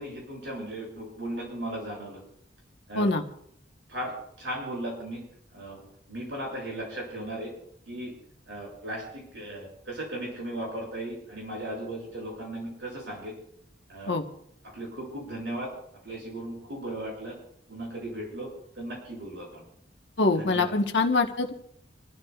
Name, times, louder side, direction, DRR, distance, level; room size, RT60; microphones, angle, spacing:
voice 1, 0.0-2.2 2.9-3.1 3.9-5.2 5.5-5.8 6.1-7.5 7.9-8.1 8.5-13.3 13.9-14.2 14.7-15.7 16.0-17.4 17.7-18.5 18.8-19.6 20.4-20.8, right 1 dB, 75° right, -2 dB, 7.1 m, -36 dB
voice 2, 20.2-21.5, left 3 dB, 70° left, 4 dB, 1.3 m, -24 dB
27.5 x 13.0 x 2.4 m, 0.71 s
head